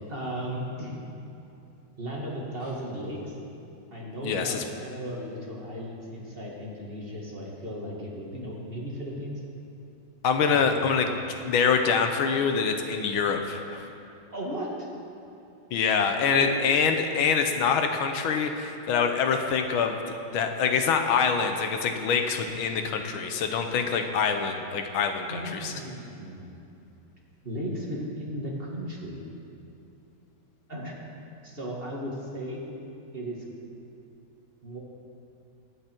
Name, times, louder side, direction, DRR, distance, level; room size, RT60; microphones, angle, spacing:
voice 1, 0.1-0.9 2.0-3.4 3.9-9.4 10.5-11.2 14.3-14.7 16.2-16.6 25.3-26.6 27.4-29.2 30.7-30.9 31.4-32.7 33.1-33.5 34.6-34.8, equal, 30° right, -3 dB, 1.9 m, -36 dB
voice 2, 4.2-4.6 10.2-11.2 11.4-13.8 15.7-20.0 20.3-25.8, left 6 dB, 80° left, 6 dB, 1.6 m, -25 dB
19.0 x 9.0 x 4.5 m, 2.7 s
omnidirectional pair, 2.3 m